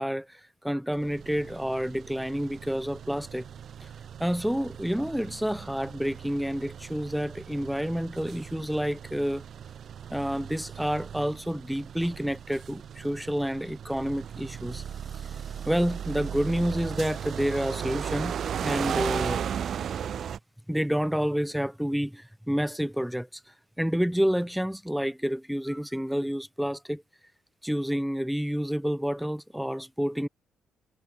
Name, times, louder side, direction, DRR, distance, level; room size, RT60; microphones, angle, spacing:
voice 1, 0.0-3.5 3.8-3.9 4.2-9.4 10.1-14.8 15.3-15.4 15.7-19.4 20.7-23.3 23.8-27.0 27.6-30.3, equal, ahead, 2.4 m, -29 dB
sound 1, 1.0-20.4, right 8 dB, 60° right, 5.7 m, -37 dB
cardioid pair, 90°, 0 cm